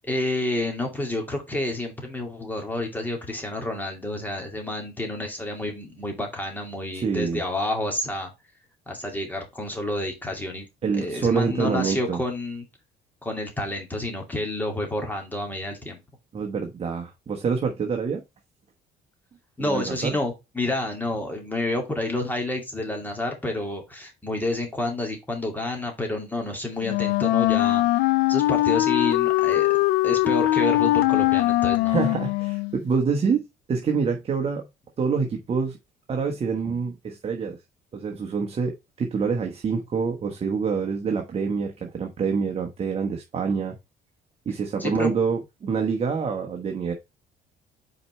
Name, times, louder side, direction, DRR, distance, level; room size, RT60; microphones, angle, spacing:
voice 1, 0.0-8.3 8.9-12.6 13.2-16.0 19.6-29.7 30.0-32.0 44.8-45.1, left 1 dB, 10° left, 2.3 m, -29 dB
voice 2, 6.9-7.4 10.8-12.2 16.3-18.2 19.6-20.2 31.8-34.7 35.0-35.8 36.1-37.6 37.9-43.7 44.5-46.9, right 5 dB, 35° right, 1.1 m, -26 dB
Wind instrument woodwind instrument, 26.8-32.8, left 17 dB, 80° left, 0.5 m, -21 dB
5.3 x 4.3 x 4.3 m
cardioid pair, 110°, 17 cm